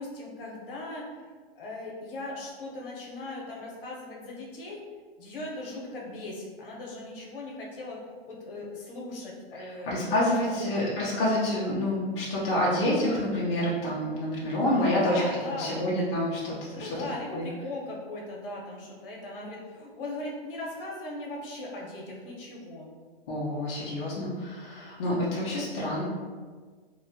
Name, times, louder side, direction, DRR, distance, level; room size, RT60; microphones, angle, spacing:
voice 1, 0.0-4.8 5.2-8.0 8.3-10.8 14.7-15.9 16.7-22.9, left 2 dB, 65° left, -2 dB, 0.8 m, -39 dB
voice 2, 9.5-15.2 15.5-17.0 17.3-17.5 23.3-26.0, left 1 dB, 30° left, -6 dB, 0.4 m, -28 dB
2.6 x 2.1 x 2.6 m, 1.5 s
hypercardioid pair, 155°, 30 cm